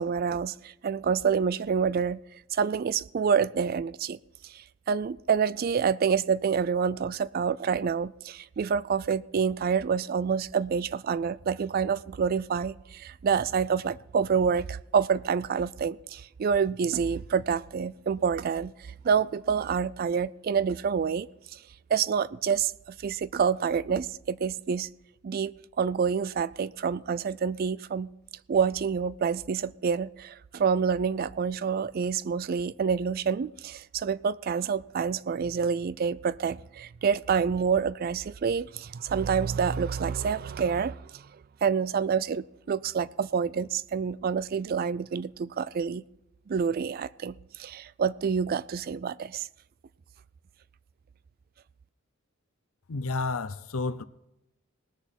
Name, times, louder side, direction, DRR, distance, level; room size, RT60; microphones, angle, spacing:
voice 1, 0.0-2.2 2.5-4.2 4.4-18.7 19.0-21.6 21.9-24.9 25.2-28.1 28.5-41.2 41.6-46.0 46.5-49.5, right 6 dB, 45° right, 0.3 m, -27 dB
voice 2, 52.9-54.0, left 3 dB, 90° left, 0.7 m, -31 dB
18.5 x 6.9 x 5.9 m
head